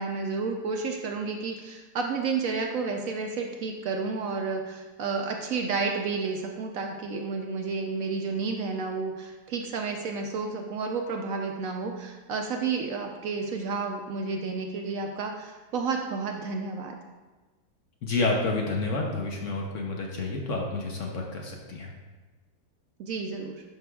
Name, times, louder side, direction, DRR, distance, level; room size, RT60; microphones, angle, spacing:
voice 1, 0.0-17.0 23.0-23.6, right 4 dB, 65° right, 2 dB, 0.9 m, -31 dB
voice 2, 18.0-21.9, left 3 dB, 55° left, 0 dB, 1.0 m, -29 dB
11.0 x 4.9 x 2.3 m, 1.2 s
omnidirectional pair, 1.7 m